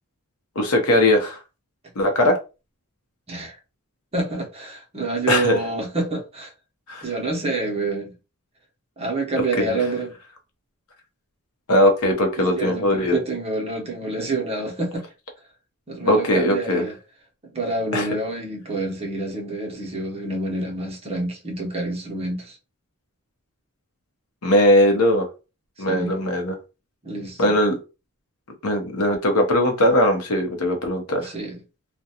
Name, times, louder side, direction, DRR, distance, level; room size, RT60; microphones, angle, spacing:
voice 1, 0.6-1.4 2.0-2.4 5.3-5.6 6.9-7.0 9.6-9.8 11.7-13.2 16.1-16.8 17.9-18.1 24.4-25.3 25.8-26.5 27.4-27.8 28.6-31.3, left 1 dB, 70° left, 0.8 m, -19 dB
voice 2, 4.1-6.5 7.0-8.1 9.0-10.1 12.5-15.0 15.9-17.0 17.4-22.6 25.9-26.2 27.0-27.6 31.2-31.6, right 2 dB, 25° right, 0.8 m, -27 dB
2.4 x 2.2 x 2.8 m
head